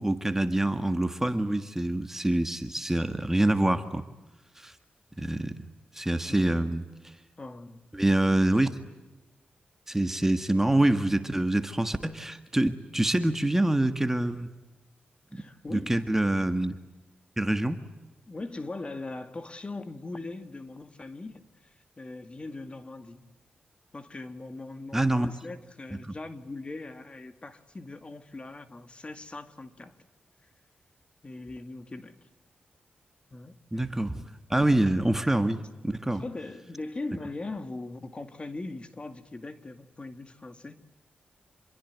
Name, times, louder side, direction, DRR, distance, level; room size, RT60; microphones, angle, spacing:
voice 1, 0.0-4.0 4.6-4.7 5.1-5.6 5.9-7.1 7.9-8.7 9.9-14.5 15.3-15.4 15.7-16.8 17.4-17.8 24.9-25.3 26.0-26.2 33.7-36.2, right 1 dB, 10° right, 1.6 m, -26 dB
voice 2, 6.3-6.6 7.4-7.8 15.3-15.9 18.3-23.3 23.9-30.0 31.2-32.2 33.3-33.9 36.1-40.8, left 2 dB, 30° left, 2.2 m, -40 dB
27.5 x 22.5 x 9.4 m
cardioid pair, 85°, 4 cm